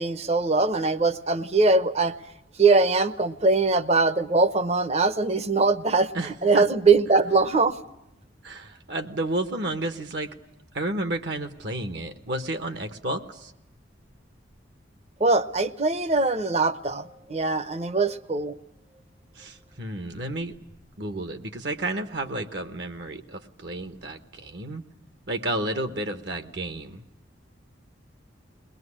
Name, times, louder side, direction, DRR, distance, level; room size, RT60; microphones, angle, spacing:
voice 1, 0.0-2.2 2.6-6.1 6.4-7.8 15.2-18.5, right 3 dB, 35° right, 13 dB, 0.8 m, -22 dB
voice 2, 6.1-6.7 8.4-10.3 10.7-13.5 19.3-20.6 21.0-24.8 25.3-27.1, right 1 dB, 60° right, 9 dB, 1.2 m, -31 dB
22.5 x 20.5 x 9.8 m, 0.87 s
head